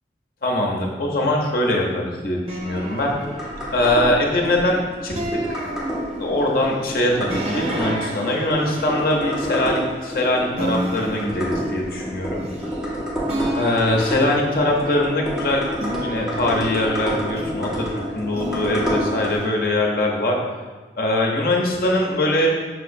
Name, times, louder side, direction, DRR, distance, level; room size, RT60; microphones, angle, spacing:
voice 1, 0.4-3.2 3.7-5.1 5.5-5.6 6.2-12.4 13.6-15.6 16.0-17.9 18.1-20.4 21.0-22.5, left 1 dB, 55° left, -1 dB, 0.6 m, -22 dB
sound 1, 2.5-19.4, equal, 5° right, 0.8 m, -29 dB
sound 2, 2.5-4.6 5.2-6.5 7.3-10.2 10.6-12.9 13.3-15.3 15.8-17.7 18.3-19.5, right 1 dB, 35° right, 0.4 m, -32 dB
5.7 x 2.9 x 2.5 m, 1.3 s
head